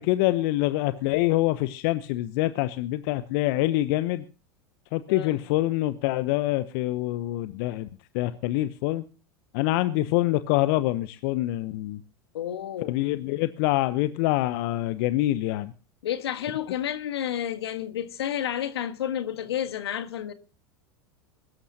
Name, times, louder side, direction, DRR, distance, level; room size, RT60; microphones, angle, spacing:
voice 1, 0.0-4.3 4.9-7.9 8.1-9.0 9.5-12.0 12.9-15.7, left 16 dB, 55° left, 0.9 m, -25 dB
voice 2, 5.1-5.4 12.3-13.0 16.0-20.3, left 10 dB, 75° left, 1.5 m, -30 dB
22.5 x 13.0 x 2.8 m
hypercardioid pair, 90°, 14 cm